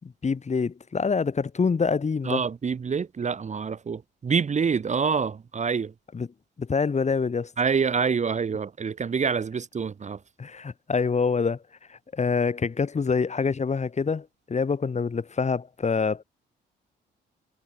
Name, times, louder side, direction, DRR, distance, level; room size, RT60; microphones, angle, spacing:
voice 1, 0.0-2.4 6.1-6.3 6.6-7.5 10.4-11.6 11.9-16.2, left 5 dB, 35° left, 5.1 m, -26 dB
voice 2, 2.2-5.9 7.6-10.2, right 6 dB, 35° right, 1.5 m, -26 dB
cardioid pair, 90°, 20 cm